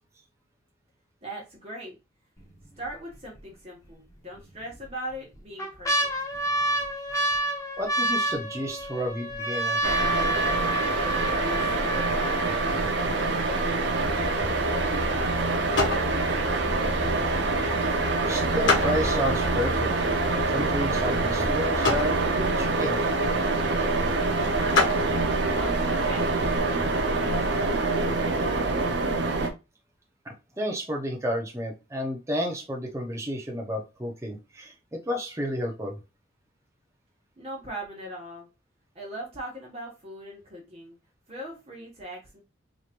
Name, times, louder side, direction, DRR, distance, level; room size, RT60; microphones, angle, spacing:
voice 1, 1.2-2.0 2.8-6.1 11.1-14.0 14.5-17.0 24.5-24.9 25.5-27.9 28.4-29.1 37.4-38.5 38.9-41.0 41.3-42.4, equal, 30° right, -3 dB, 1.3 m, -41 dB
sound 1, 2.4-2.9 3.4-3.5 4.4-4.9 5.3-13.3 14.0-14.1 14.3-14.8 15.2-15.3, right 1 dB, 15° left, 0.8 m, -29 dB
voice 2, 7.8-9.8 18.3-19.9 20.3-23.0 30.2-36.0, equal, 15° right, 1 dB, 0.7 m, -31 dB
sound 2, 9.8-29.5, right 3 dB, 55° right, 0.8 m, -25 dB
sound 3, 14.0-26.6, left 2 dB, 65° left, 1.5 m, -32 dB
4.9 x 3.0 x 2.5 m, 0.27 s
head